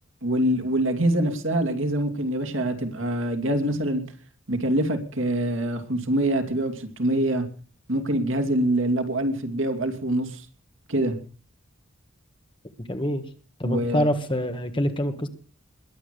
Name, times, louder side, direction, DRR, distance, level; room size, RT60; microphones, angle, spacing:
voice 1, 0.2-4.0 4.5-7.5 7.9-10.4 10.9-11.2 13.6-14.1, right 1 dB, 70° right, 6 dB, 2.8 m, -25 dB
voice 2, 12.9-13.2 13.6-15.3, equal, 25° left, 7 dB, 1.6 m, -25 dB
21.5 x 8.6 x 6.8 m, 0.41 s
head